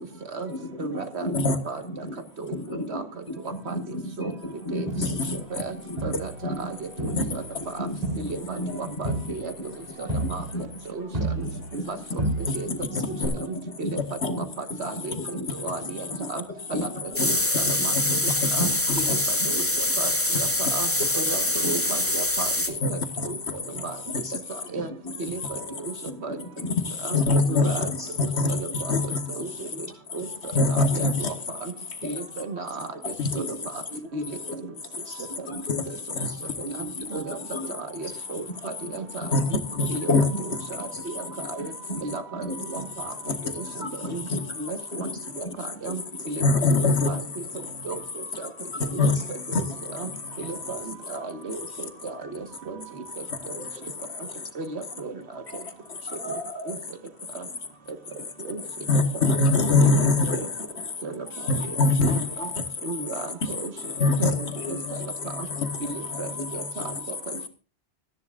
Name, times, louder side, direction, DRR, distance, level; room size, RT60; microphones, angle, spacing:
voice 1, 0.1-1.5 1.8-2.1 2.5-6.1 6.4-6.7 6.9-9.3 10.0-10.6 11.0-12.2 12.6-13.9 14.2-14.4 14.8-15.7 16.0-16.3 16.7-17.3 17.6-18.2 18.6-18.7 19.1-19.6 20.0-20.5 21.6-21.8 23.7-23.8 24.2-24.3 25.0-25.1 25.6-25.7 26.0-26.7 27.1-28.1 28.5-28.7 29.6-29.7 30.9-31.1 32.0-32.1 33.3-33.6 33.8-34.0 34.4-34.6 35.0-35.8 36.2-37.7 38.0-38.9 39.2-39.4 39.7-40.0 40.3-42.0 42.3-42.7 43.8-44.4 44.9-45.1 45.4-45.5 45.8-45.9 46.8-46.9 48.9-49.7 50.9-51.0 53.5-53.6 55.0-55.2 55.5-55.6 56.1-56.8 58.1-58.2 64.4-64.8 66.4-66.5 66.9-67.0 67.3-67.4, equal, 45° left, 4.8 m, -36 dB
voice 2, 0.8-1.8 2.5-2.6 2.9-3.0 3.7-3.8 4.2-4.3 4.7-4.9 5.5-5.7 6.0-7.4 7.7-7.9 8.2-9.5 10.0-10.4 10.9-11.1 11.9-12.2 12.5-13.2 13.8-14.0 14.6-16.4 16.7-17.9 18.5-18.7 19.5-20.1 20.4-20.9 21.1-22.5 22.9-23.0 23.2-23.4 23.8-24.0 24.7-24.9 25.2-25.6 25.8-25.9 26.2-26.4 27.0-27.2 27.5-27.9 28.2-28.9 29.4-29.9 30.1-30.3 30.7-31.1 31.6-31.7 32.0-32.9 33.3-33.4 34.1-34.4 37.1-37.4 37.8-39.3 39.5-39.6 39.9-41.7 42.0-43.1 43.6-43.7 44.0-44.2 44.6-45.1 45.4-45.5 45.8-46.0 46.3-47.2 47.9-48.5 49.9-50.1 50.4-50.8 51.1-52.8 54.6-55.1 56.7-56.8 58.5-58.6 59.8-59.9 60.4-60.5 61.0-61.3 62.4-62.5 62.8-63.3 63.6-63.7 64.2-64.3 64.7-64.8 65.4-65.5 65.9-66.9, right 3 dB, 75° right, 1.9 m, -34 dB
Crowd, 4.9-6.7 7.0-11.9 12.2-12.8 13.2-13.3, right 1 dB, 35° right, 5.0 m, -32 dB
sound 1, 17.1-22.7, left 1 dB, 10° left, 1.5 m, -25 dB
voice 3, 27.1-27.7 28.4-28.6 28.9-29.2 30.6-31.1 33.0-33.3 36.2-36.3 39.3-39.4 39.8-40.3 46.4-47.1 49.0-49.1 49.5-49.6 58.9-60.4 61.5-62.3 64.0-64.3 65.6-65.7, left 3 dB, 80° left, 1.7 m, -21 dB
26.0 x 11.0 x 2.5 m
omnidirectional pair, 1.1 m